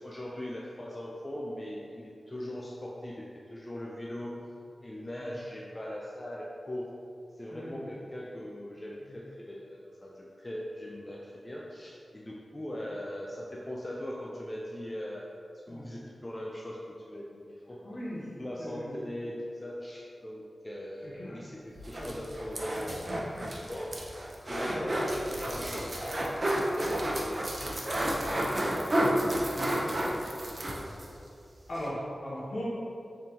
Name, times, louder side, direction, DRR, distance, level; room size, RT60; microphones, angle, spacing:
voice 1, 0.0-4.5 4.8-7.0 7.3-15.4 15.7-17.8 18.4-24.2 24.5-27.4 27.7-31.2, left 1 dB, 25° left, -4 dB, 0.4 m, -40 dB
voice 2, 7.5-7.8 15.7-15.8 17.8-18.3 18.6-18.9 21.2-21.4 21.9-22.1 24.7-24.9 31.7-32.6, equal, 75° left, -8 dB, 1.2 m, -38 dB
sound 1, 21.8-31.1 31.4-31.5 31.7-31.9, right 1 dB, 45° right, 0.6 m, -31 dB
3.7 x 3.7 x 2.8 m, 2.5 s
cardioid pair, 45°, 0 cm